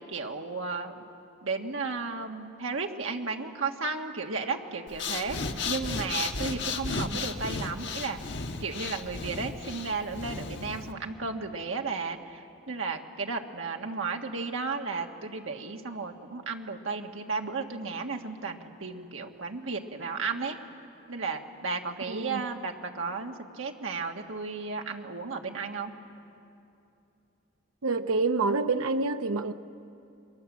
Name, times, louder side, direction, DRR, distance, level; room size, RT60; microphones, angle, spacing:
voice 1, 0.1-1.0 1.4-8.2 8.6-20.6 21.1-25.9, right 4 dB, 75° right, 1.7 m, -34 dB
Breathing, 4.9-10.9, left 4 dB, 55° left, 1.3 m, -34 dB
voice 2, 22.1-22.4 27.8-29.5, right 3 dB, 90° right, 0.8 m, -27 dB
28.5 x 23.0 x 7.4 m
head